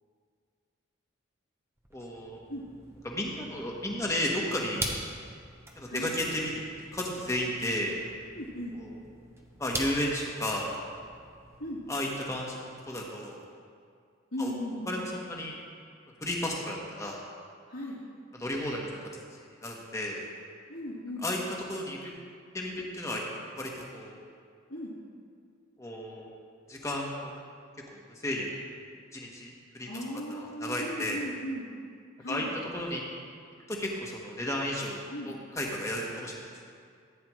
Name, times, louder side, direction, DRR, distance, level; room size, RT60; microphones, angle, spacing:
sound 1, 1.8-12.3, right 1 dB, 10° right, 0.9 m, -43 dB
voice 1, 1.9-2.4 3.0-4.9 5.8-6.6 6.9-7.9 8.7-9.0 9.6-10.7 11.9-12.6 12.9-13.4 14.4-14.5 14.9-15.5 16.2-17.2 18.3-20.2 21.2-21.4 21.7-22.1 22.5-23.2 23.5-24.2 25.8-26.3 26.7-27.4 27.9-28.5 29.1-30.0 30.3-31.2 32.3-32.5 32.7-33.0 33.7-35.0 35.2-36.7, left 1 dB, 15° left, -1 dB, 1.3 m, -33 dB
voice 2, 8.3-8.8 11.6-11.8 14.3-15.0 17.7-18.0 20.7-21.2 24.7-24.9 29.9-31.7 32.2-32.5 35.1-35.3, equal, 80° left, -13 dB, 3.1 m, -37 dB
14.5 x 9.4 x 3.1 m, 2.2 s
head